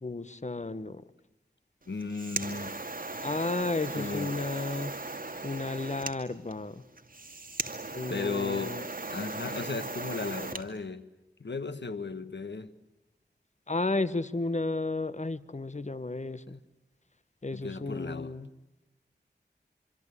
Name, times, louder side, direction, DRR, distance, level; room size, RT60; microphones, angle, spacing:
voice 1, 0.0-1.0 3.2-4.9 5.4-6.8 7.9-8.8 13.7-16.6 17.4-18.5, left 3 dB, 40° left, 1.2 m, -33 dB
voice 2, 1.9-2.8 3.9-4.3 8.1-8.8 9.1-11.1 11.4-12.7 17.5-18.4, left 4 dB, 75° left, 1.5 m, -35 dB
sound 1, 1.9-10.7, right 3 dB, 50° right, 2.4 m, -38 dB
25.5 x 25.0 x 8.4 m
wide cardioid pair, 50°, 18 cm